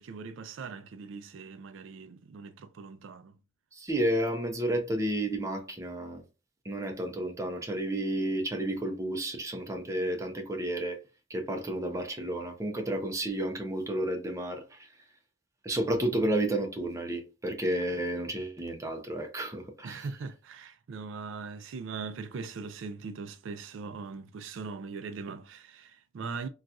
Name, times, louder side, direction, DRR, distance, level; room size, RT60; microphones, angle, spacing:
voice 1, 0.0-3.3 19.8-26.5, right 4 dB, 70° right, 0.4 m, -40 dB
voice 2, 3.7-6.2 6.6-11.0 11.3-14.8 15.6-20.0, right 1 dB, 15° right, 0.6 m, -31 dB
4.0 x 2.4 x 2.3 m
head